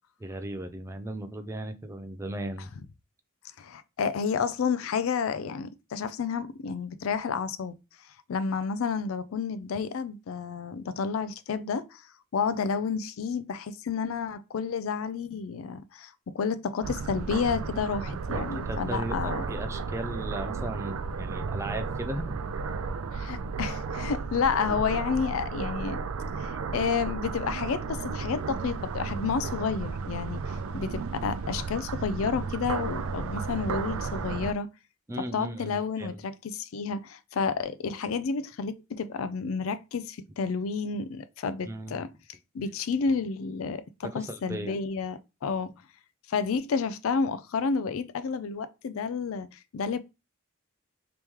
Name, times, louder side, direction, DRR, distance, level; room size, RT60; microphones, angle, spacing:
voice 1, 0.2-2.7 18.3-22.4 35.1-36.2 41.6-42.0 44.1-44.8, right 1 dB, 15° right, 0.4 m, -36 dB
voice 2, 3.6-7.8 8.3-12.0 12.3-19.4 23.1-26.0 26.4-34.7 35.2-42.1 42.5-45.7 46.3-50.0, left 5 dB, 75° left, 0.4 m, -30 dB
sound 1, 16.8-34.5, right 4 dB, 85° right, 0.4 m, -33 dB
3.0 x 3.0 x 3.5 m
head